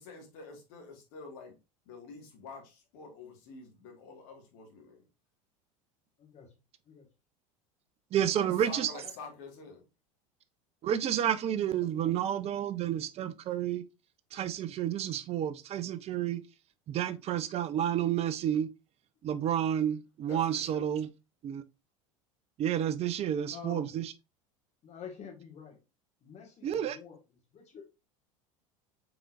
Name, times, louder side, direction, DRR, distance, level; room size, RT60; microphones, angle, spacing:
voice 1, 0.0-1.6 1.9-5.0 8.4-9.8 20.3-20.9, left 4 dB, 60° left, 1.8 m, -48 dB
voice 2, 6.2-6.5 6.9-7.1 9.0-9.1 23.3-23.9 24.8-25.8 26.2-27.2 27.5-28.0, left 6 dB, 40° left, 1.7 m, -48 dB
voice 3, 8.1-8.9 10.8-13.8 14.3-16.4 16.9-18.7 19.2-21.1 21.4-21.6 22.6-24.1 26.6-27.0, right 10 dB, 35° right, 0.5 m, -30 dB
4.9 x 3.7 x 2.5 m
hypercardioid pair, 80°, 18 cm